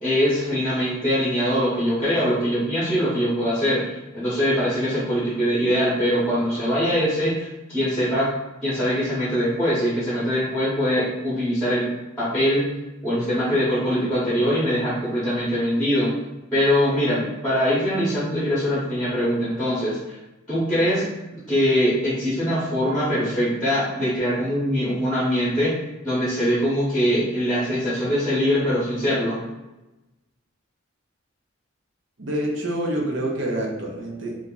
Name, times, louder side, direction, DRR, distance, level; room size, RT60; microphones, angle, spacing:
voice 1, 0.0-8.3 8.6-11.9 12.2-12.6 13.0-16.1 16.5-20.2 20.5-21.1 21.5-25.8 26.0-29.4, equal, 5° left, -9 dB, 1.0 m, -22 dB
voice 2, 32.2-34.4, right 1 dB, 55° right, -1 dB, 0.7 m, -27 dB
2.8 x 2.5 x 3.8 m, 1.0 s
head